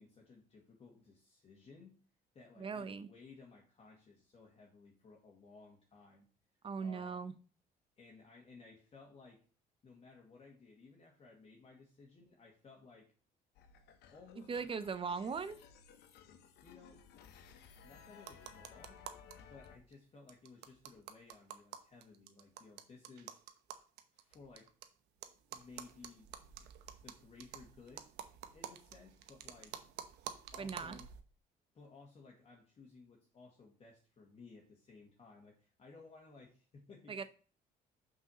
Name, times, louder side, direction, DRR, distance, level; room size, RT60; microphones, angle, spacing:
voice 1, 0.0-2.0 2.3-6.3 6.8-7.3 8.0-9.4 9.8-13.1 14.1-14.7 16.0-16.2 16.6-17.0 17.8-19.0 19.5-23.4 24.1-24.7 25.5-26.4 27.0-28.1 28.5-29.8 30.5-31.1 31.7-37.2, left 4 dB, 35° left, -1 dB, 1.9 m, -58 dB
voice 2, 2.6-3.1 6.6-7.3 14.5-15.6 30.6-31.0 37.1-37.2, right 5 dB, 30° right, 13 dB, 0.8 m, -39 dB
sound 1, 13.5-19.8, left 7 dB, 80° left, 1.1 m, -58 dB
sound 2, 18.2-19.3 19.6-19.7 19.9-20.0 20.3-24.8 25.2-31.2, right 10 dB, 85° right, 1.0 m, -49 dB
6.0 x 4.8 x 6.3 m, 0.39 s
cardioid pair, 110°, 17 cm